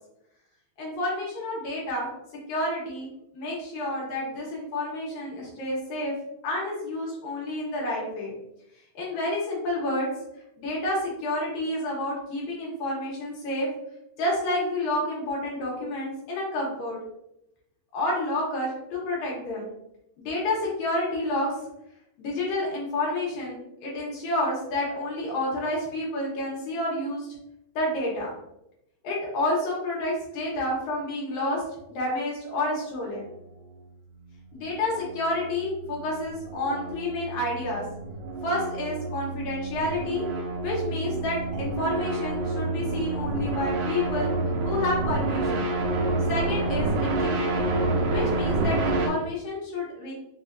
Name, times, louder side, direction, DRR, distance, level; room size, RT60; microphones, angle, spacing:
voice 1, 0.8-2.1 2.5-3.1 3.3-6.1 6.4-8.3 9.0-10.1 10.6-13.7 14.2-17.0 17.9-19.7 20.2-21.5 22.2-27.3 27.8-28.3 29.0-31.6 31.9-33.3 34.5-37.8 38.4-40.3 40.6-44.3 44.6-45.7 46.3-47.7 48.1-50.1, left 1 dB, 90° left, -4 dB, 2.3 m, -29 dB
sound 1, 34.5-49.1, right 2 dB, 85° right, 2.1 m, -28 dB
5.4 x 2.2 x 2.4 m, 0.83 s
omnidirectional pair, 3.3 m